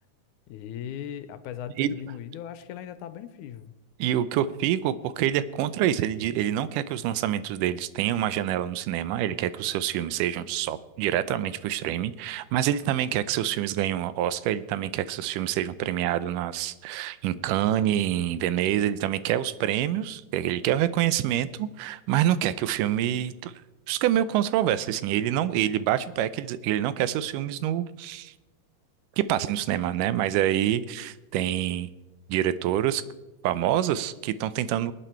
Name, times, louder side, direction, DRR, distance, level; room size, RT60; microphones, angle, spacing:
voice 1, 0.5-3.7, left 10 dB, 80° left, 13 dB, 2.1 m, -38 dB
voice 2, 4.0-23.5 23.9-28.3 29.2-31.9 32.3-33.0 33.4-34.9, right 11 dB, 85° right, 15 dB, 2.2 m, -26 dB
23.0 x 9.2 x 4.5 m, 1.1 s
omnidirectional pair, 3.7 m